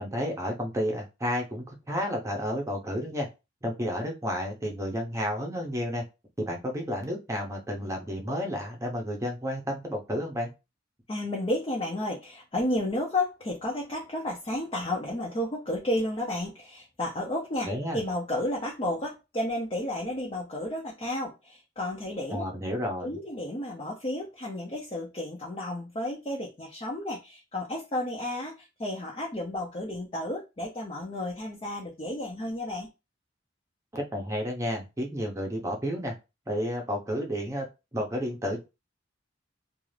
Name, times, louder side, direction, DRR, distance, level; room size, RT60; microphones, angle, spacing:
voice 1, 0.0-3.3 3.6-6.0 6.4-10.5 17.7-18.0 22.3-23.1 33.9-36.1 36.5-37.6 37.9-38.6, equal, 15° right, 0.7 m, -31 dB
voice 2, 11.1-17.7 17.9-22.4 23.0-32.9, left 1 dB, 30° left, 0.6 m, -32 dB
2.6 x 2.4 x 3.2 m
head